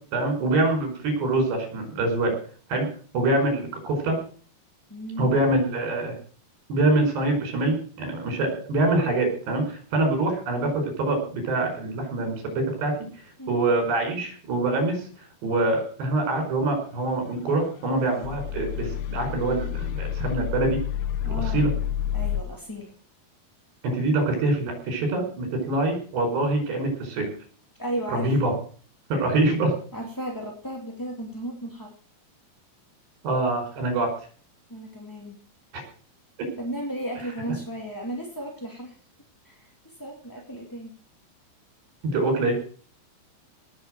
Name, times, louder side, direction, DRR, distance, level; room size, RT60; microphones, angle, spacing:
voice 1, 0.1-2.3 2.7-2.9 3.1-4.2 5.2-6.2 6.7-15.1 15.4-20.8 21.3-21.7 23.8-27.3 28.1-28.5 29.1-29.7 33.2-34.1 42.0-42.5, right 2 dB, 75° right, 4 dB, 7.0 m, -25 dB
voice 2, 4.9-5.3 13.4-13.6 21.2-21.7 22.1-22.9 27.8-28.3 29.9-31.9 34.7-35.4 36.6-38.9 39.4-40.9, right 1 dB, 5° left, -1 dB, 1.5 m, -34 dB
sound 1, 17.1-22.4, left 10 dB, 75° left, 2.8 m, -30 dB
18.5 x 7.2 x 7.8 m, 0.44 s
omnidirectional pair, 5.0 m